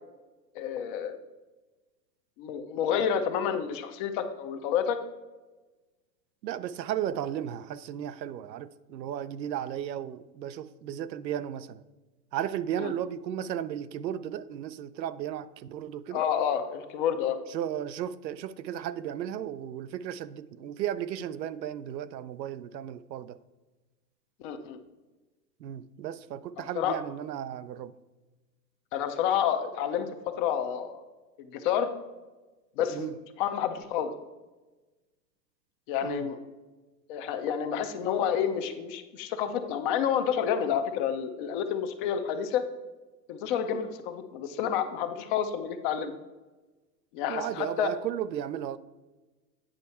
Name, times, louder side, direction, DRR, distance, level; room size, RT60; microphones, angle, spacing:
voice 1, 0.5-1.2 2.4-5.0 12.8-12.9 16.1-17.4 24.4-24.8 26.8-26.9 28.9-30.1 30.4-31.0 31.4-31.9 32.8-33.1 33.4-34.1 35.9-36.4 37.1-42.6 43.3-46.1 47.1-47.9, left 8 dB, 30° left, 8 dB, 0.6 m, -29 dB
voice 2, 6.4-11.8 12.3-16.2 17.5-23.4 25.6-27.9 32.9-33.1 36.0-36.3 47.3-48.8, right 10 dB, 90° right, 14 dB, 0.6 m, -35 dB
8.9 x 5.3 x 4.2 m, 1.2 s
hypercardioid pair, 135°, 49 cm